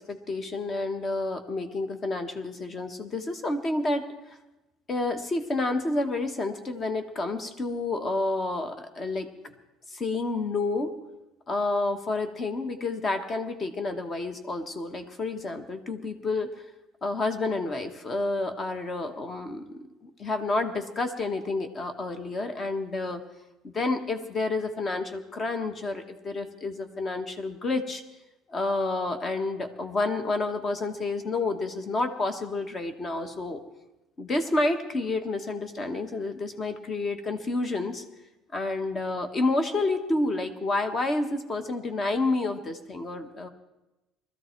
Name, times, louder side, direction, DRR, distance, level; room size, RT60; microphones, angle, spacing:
voice 1, 0.1-4.4 4.9-9.5 9.9-10.9 11.5-16.5 17.0-23.2 23.6-28.0 28.5-33.6 34.2-38.0 38.5-43.5, left 2 dB, 25° left, 8 dB, 1.3 m, -29 dB
20.5 x 14.0 x 4.5 m, 0.99 s
cardioid pair, 170°, 0 cm